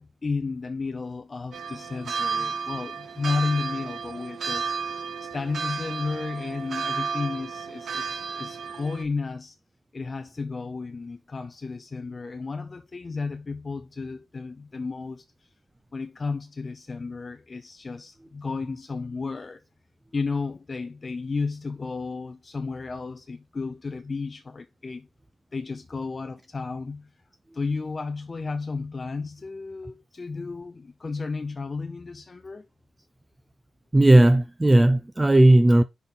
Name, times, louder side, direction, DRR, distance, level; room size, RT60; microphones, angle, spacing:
voice 1, 0.0-9.6 9.9-15.2 15.9-19.6 20.1-25.1 25.5-27.1 27.5-32.7, left 4 dB, 35° left, 0.6 m, -33 dB
sound 1, 1.5-9.0, right 5 dB, 65° right, 0.8 m, -32 dB
voice 2, 33.9-35.8, right 1 dB, 15° right, 0.6 m, -16 dB
6.0 x 5.3 x 3.9 m
cardioid pair, 95°, 0 cm